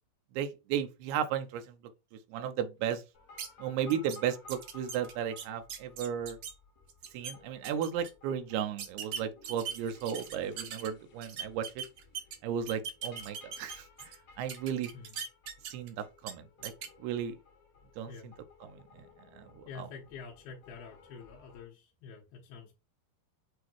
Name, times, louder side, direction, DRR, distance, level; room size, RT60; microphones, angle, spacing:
voice 1, 0.3-1.8 2.3-3.0 3.6-6.4 7.1-11.8 12.4-14.9 15.7-16.7 17.0-17.4 18.0-18.1 18.6-19.1 19.3-19.9, right 8 dB, 85° right, 2.7 m, -35 dB
sound 1, 3.1-21.6, left 4 dB, 50° left, 2.2 m, -58 dB
sound 2, 3.4-3.5 3.9-4.2 4.5-6.5 6.9-7.3 7.6-8.1 8.8-10.9 11.2-12.4 12.7-14.1 14.5-15.9 16.2-16.3 16.6-16.9, right 7 dB, 70° right, 1.5 m, -40 dB
voice 2, 19.7-22.7, left 5 dB, 75° left, 3.3 m, -47 dB
8.2 x 2.8 x 4.6 m
omnidirectional pair, 4.5 m